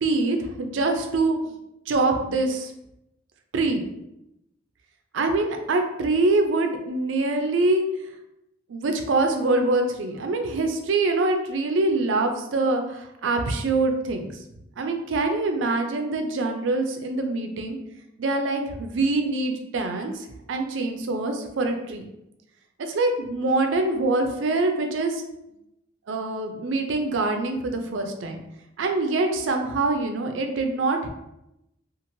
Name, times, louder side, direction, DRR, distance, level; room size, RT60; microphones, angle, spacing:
voice 1, 0.0-1.5 1.9-2.7 3.5-3.8 5.1-7.8 8.7-14.3 14.8-17.8 18.2-22.1 22.8-25.2 26.1-28.4 28.8-31.1, right 2 dB, 75° right, 5 dB, 0.4 m, -24 dB
3.0 x 2.4 x 2.6 m, 0.85 s
head